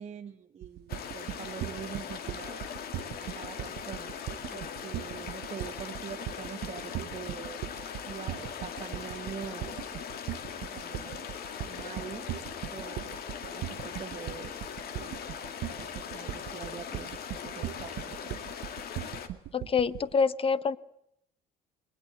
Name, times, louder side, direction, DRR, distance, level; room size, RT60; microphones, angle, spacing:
voice 1, 0.0-2.7 3.2-4.2 4.5-10.0 10.7-11.3 11.6-12.4 12.7-14.6 15.0-15.4 15.7-17.2 17.4-18.5, right 8 dB, 40° right, 7 dB, 1.0 m, -44 dB
sound 1, 0.6-20.1, right 14 dB, 70° right, 0.9 m, -38 dB
sound 2, 0.9-19.3, left 7 dB, 65° left, 2.3 m, -40 dB
voice 2, 19.5-20.8, left 5 dB, 35° left, 17 dB, 1.0 m, -26 dB
22.5 x 19.5 x 8.0 m, 0.75 s
cardioid pair, 110°, 17 cm